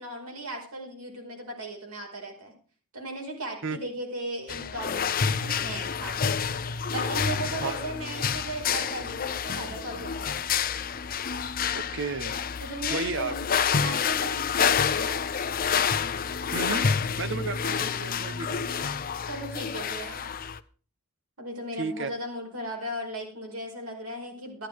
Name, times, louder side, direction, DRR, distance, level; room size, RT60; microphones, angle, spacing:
voice 1, 0.0-2.5 2.9-6.4 6.9-10.3 12.6-13.5 13.7-15.2 19.3-20.3 21.4-24.7, right 1 dB, 85° right, 1 dB, 5.1 m, -37 dB
sound 1, 4.5-20.6, left 6 dB, 40° left, 0.6 m, -28 dB
voice 2, 11.7-12.4 12.9-13.3 16.1-18.8 21.8-22.1, right 4 dB, 55° right, 9 dB, 1.0 m, -33 dB
13.0 x 12.5 x 4.7 m, 0.40 s
head